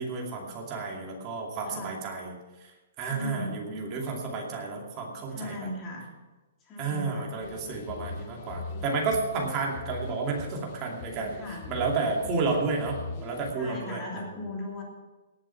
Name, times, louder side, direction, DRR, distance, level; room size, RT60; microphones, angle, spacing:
voice 1, 0.0-2.4 3.0-5.7 6.8-14.4, right 4 dB, 20° right, -1 dB, 2.5 m, -31 dB
voice 2, 3.1-3.6 5.3-6.1 6.6-7.3 11.3-11.6 13.5-14.8, left 2 dB, 15° left, -2 dB, 3.0 m, -37 dB
sound 1, 7.4-13.5, left 4 dB, 35° left, 1.0 m, -41 dB
18.0 x 7.9 x 5.8 m, 1.1 s
hypercardioid pair, 170°, 0 cm